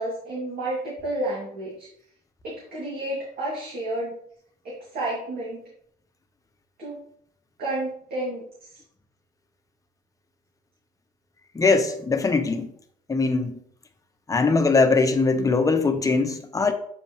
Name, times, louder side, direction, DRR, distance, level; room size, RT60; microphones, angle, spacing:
voice 1, 0.0-1.9 2.4-4.2 4.6-5.6 6.8-7.0 7.6-8.8, right 1 dB, 60° right, -5 dB, 2.4 m, -31 dB
voice 2, 11.5-12.7 13.1-13.6 14.3-16.7, left 4 dB, 20° left, 6 dB, 0.9 m, -21 dB
8.0 x 4.4 x 3.1 m, 0.64 s
cardioid pair, 110°, 17 cm